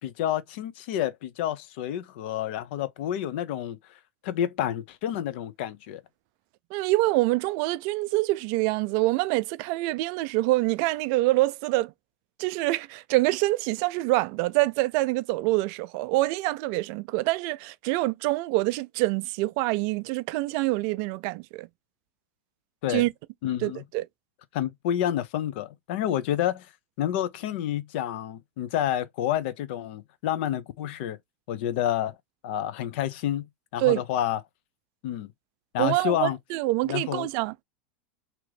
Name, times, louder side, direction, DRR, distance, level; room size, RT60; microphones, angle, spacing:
voice 1, 0.0-3.8 4.2-6.0 22.8-23.0 23.4-23.8 24.5-26.7 27.0-31.2 31.5-32.2 32.4-33.5 33.7-34.4 35.0-35.3 35.7-36.4 36.8-37.3, left 11 dB, 65° left, 0.6 m, -29 dB
voice 2, 6.7-11.9 12.4-21.7 22.9-23.1 23.6-24.0 33.8-34.0 35.8-37.6, right 20 dB, 55° right, 0.4 m, -25 dB
2.9 x 2.6 x 3.2 m
hypercardioid pair, 100°, 6 cm